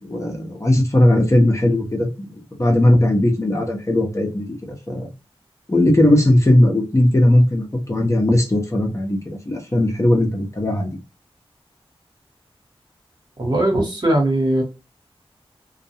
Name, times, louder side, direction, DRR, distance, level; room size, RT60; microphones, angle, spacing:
voice 1, 0.0-4.4 4.9-5.1 5.7-9.2 9.5-10.9, left 1 dB, 30° left, 0 dB, 0.8 m, -17 dB
voice 2, 13.4-14.6, right 1 dB, 45° right, 0 dB, 1.2 m, -19 dB
2.3 x 2.2 x 2.7 m, 0.28 s
wide cardioid pair, 85°, 10 cm